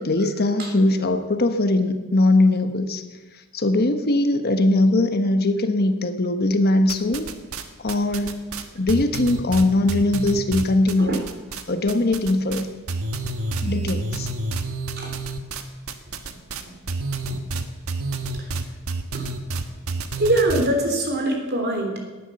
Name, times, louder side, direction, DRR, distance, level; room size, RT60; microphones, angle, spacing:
voice 1, 0.0-3.0 3.5-7.3 7.8-8.4 8.7-11.2 11.7-12.7 13.6-14.3, left 2 dB, 45° left, 8 dB, 1.2 m, -20 dB
sound 1, 6.9-7.6 7.9-11.6 11.9-12.6 12.9-20.7, right 3 dB, 75° right, 1.4 m, -29 dB
voice 2, 20.2-22.0, right 1 dB, 50° right, 3 dB, 3.4 m, -22 dB
18.0 x 11.0 x 7.0 m, 1.2 s
head